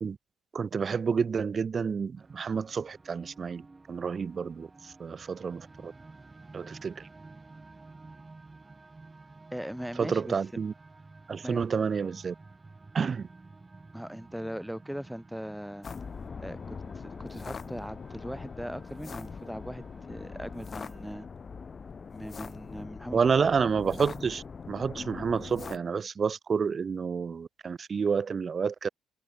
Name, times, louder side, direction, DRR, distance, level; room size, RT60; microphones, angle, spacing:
voice 1, 0.5-3.6 3.9-5.9 6.5-7.1 10.0-10.7 11.3-12.3 12.9-13.3 23.1-28.9, right 6 dB, 45° right, 0.4 m, -29 dB
sound 1, 2.2-21.3, right 3 dB, 25° right, 2.4 m, -52 dB
voice 2, 9.5-10.4 11.4-11.6 13.9-15.9 16.4-21.3 22.1-23.2, equal, 5° right, 4.1 m, -40 dB
sound 2, 15.8-25.8, left 5 dB, 40° left, 4.3 m, -42 dB
hypercardioid pair, 50°, 0 cm